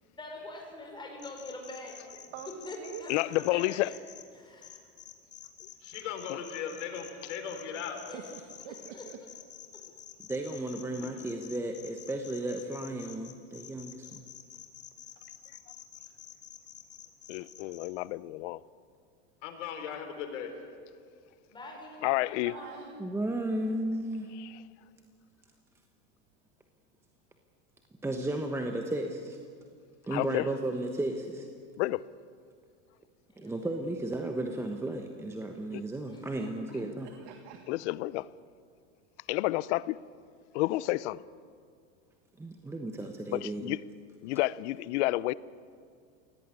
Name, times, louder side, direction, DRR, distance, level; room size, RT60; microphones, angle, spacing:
voice 1, 0.2-2.0 2.6-3.9 4.3-4.8 8.1-8.3 8.9-9.3 21.5-23.0 33.3-33.7 36.1-36.8, left 2 dB, 15° left, 5.2 m, -45 dB
sound 1, 1.2-4.2 4.6-17.9, left 10 dB, 30° left, 2.3 m, -49 dB
voice 2, 3.1-3.9 17.3-18.6 22.0-22.5 24.4-24.6 30.1-30.4 31.8-32.0 35.7-35.8 37.7-38.3 39.3-40.0 40.5-41.2 43.3-43.8 44.2-45.3, left 19 dB, 70° left, 0.7 m, -30 dB
voice 3, 5.8-8.0 19.4-20.5, left 7 dB, 90° left, 3.9 m, -38 dB
voice 4, 8.1-9.2 22.4-22.9 37.0-37.7, right 10 dB, 70° right, 1.8 m, -45 dB
voice 5, 10.3-14.2 23.0-24.3 28.0-29.4 30.1-31.5 33.4-37.1 42.4-43.8, right 1 dB, 5° right, 1.1 m, -34 dB
23.0 x 17.5 x 9.7 m
supercardioid pair, 145°, 36 cm